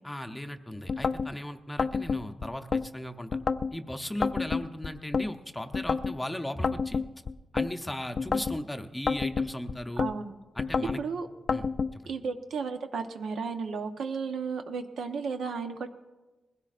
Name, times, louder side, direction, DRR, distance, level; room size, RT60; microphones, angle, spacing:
voice 1, 0.0-3.4 3.7-7.0 7.5-10.0 10.6-11.0 11.5-11.7 11.9-12.0, left 1 dB, 10° left, 6 dB, 0.7 m, -37 dB
sound 1, 0.9-1.3 1.8-2.9 3.3-3.7 4.2-5.3 5.7-6.2 6.6-7.7 8.2-8.6 9.1-10.1 10.6-11.0 11.5-11.9, left 5 dB, 45° left, 0.3 m, -28 dB
voice 2, 10.0-10.3 11.0-11.3 12.1-15.9, right 5 dB, 80° right, 6 dB, 1.0 m, -33 dB
20.5 x 16.0 x 2.5 m, 1.2 s
wide cardioid pair, 130°, 0 cm